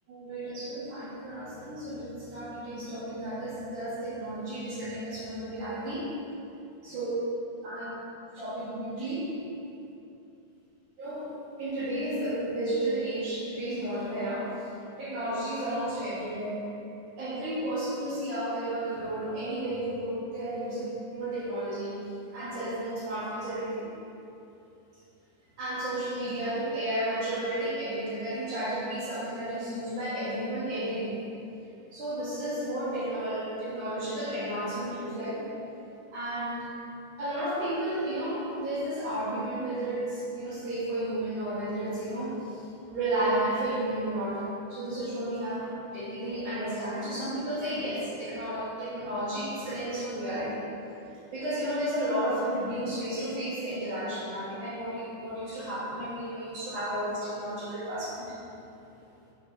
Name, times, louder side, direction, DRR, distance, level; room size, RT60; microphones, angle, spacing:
voice 1, 0.1-6.3 6.8-7.1 7.6-7.9 8.4-9.3 11.0-11.3 11.6-14.6 15.0-16.6 17.2-21.9 22.3-23.9 25.6-31.2 31.9-35.4 36.1-36.7 37.2-50.7 51.3-58.3, right 1 dB, 50° right, -10 dB, 3.5 m, -32 dB
9.8 x 8.0 x 4.3 m, 2.8 s
omnidirectional pair, 5.0 m